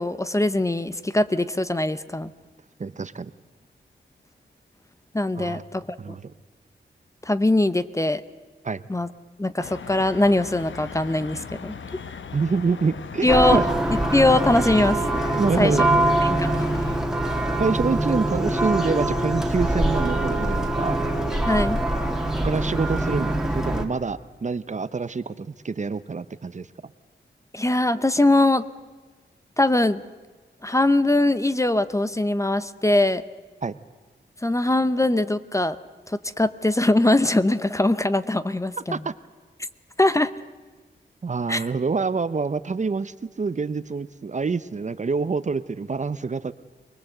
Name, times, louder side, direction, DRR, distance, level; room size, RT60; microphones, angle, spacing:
voice 1, 0.0-2.3 5.1-5.9 7.2-8.2 8.9-9.1 9.4-11.8 13.2-13.6 14.1-15.0 15.6-15.7 16.2-16.7 21.4-21.8 27.5-28.6 29.6-30.0 30.6-33.2 34.4-35.8 36.1-39.0 40.0-40.3 41.5-41.7, left 2 dB, 15° left, 13 dB, 0.7 m, -21 dB
voice 2, 2.8-3.3 5.4-5.6 6.0-6.3 8.6-8.9 12.3-13.6 15.4-16.1 17.6-21.0 22.4-26.7 33.6-33.8 38.9-39.1 41.2-46.5, right 4 dB, 40° right, 15 dB, 0.7 m, -26 dB
sound 1, 9.6-17.0, left 6 dB, 85° left, 1.0 m, -39 dB
Church bell, 13.3-23.8, right 1 dB, 5° right, 2.0 m, -23 dB
24.0 x 20.5 x 7.9 m, 1.3 s
wide cardioid pair, 120°, 19 cm